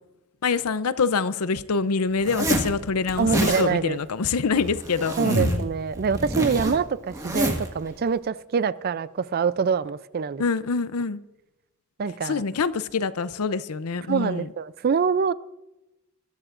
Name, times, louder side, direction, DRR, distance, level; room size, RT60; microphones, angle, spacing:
voice 1, 0.4-5.7 10.4-11.2 12.2-14.5, left 4 dB, 80° left, 0.6 m, -25 dB
Zipper (clothing), 2.2-2.7 3.1-3.7 4.5-5.6 5.9-7.7, right 1 dB, 15° right, 1.7 m, -27 dB
voice 2, 3.2-4.0 5.2-10.4 12.0-12.4 14.1-15.3, right 5 dB, 45° right, 0.4 m, -25 dB
21.5 x 12.5 x 2.5 m
head